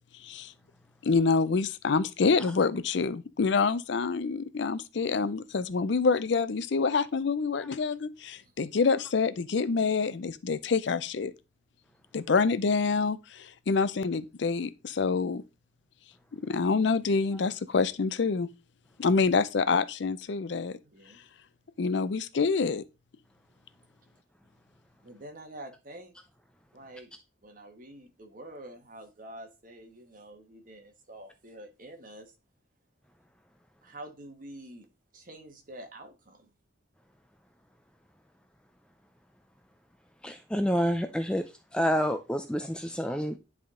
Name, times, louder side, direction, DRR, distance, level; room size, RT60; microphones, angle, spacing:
voice 1, 1.0-11.3 12.1-15.4 16.3-18.5 19.0-20.7 21.8-22.8, left 4 dB, 65° left, 0.5 m, -27 dB
voice 2, 20.8-21.2 25.0-26.2 26.7-27.2 27.4-32.3 33.8-34.9 35.1-36.5, right 1 dB, 45° right, 1.3 m, -47 dB
voice 3, 40.2-41.4 41.7-43.4, equal, 5° left, 0.4 m, -28 dB
10.0 x 3.6 x 3.7 m
head